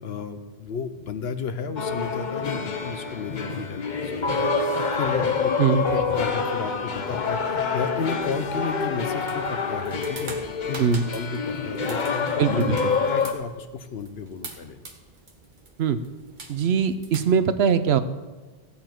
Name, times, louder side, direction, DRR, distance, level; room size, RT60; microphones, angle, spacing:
voice 1, 0.0-10.3 10.7-10.8 11.1-14.8, left 5 dB, 75° left, 9 dB, 1.1 m, -33 dB
sound 1, 1.8-13.3, left 5 dB, 50° left, 0.9 m, -27 dB
sound 2, 4.2-8.7, left 2 dB, 30° left, 1.0 m, -32 dB
sound 3, 8.2-17.2, right 3 dB, 50° right, 1.4 m, -45 dB
voice 2, 12.4-12.8 15.8-16.0 16.5-18.0, right 7 dB, 80° right, 12 dB, 1.0 m, -21 dB
15.0 x 8.5 x 4.5 m, 1.3 s
omnidirectional pair, 1.1 m